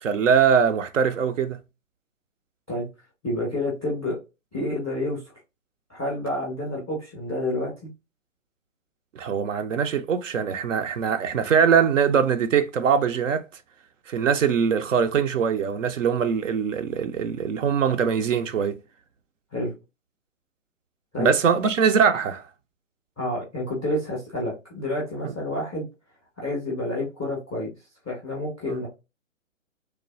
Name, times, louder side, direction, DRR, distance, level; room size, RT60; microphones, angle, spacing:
voice 1, 0.0-1.6 9.2-13.4 14.1-18.8 21.2-22.4 25.2-25.3 28.7-28.8, right 7 dB, 65° right, 0.5 m, -22 dB
voice 2, 3.2-4.2 4.5-5.2 5.9-7.9 19.5-19.7 21.1-21.3 23.2-25.8 26.4-27.7 28.0-28.9, left 1 dB, ahead, 0.4 m, -29 dB
3.1 x 2.1 x 2.3 m
figure-of-eight pair, 130°, 41 cm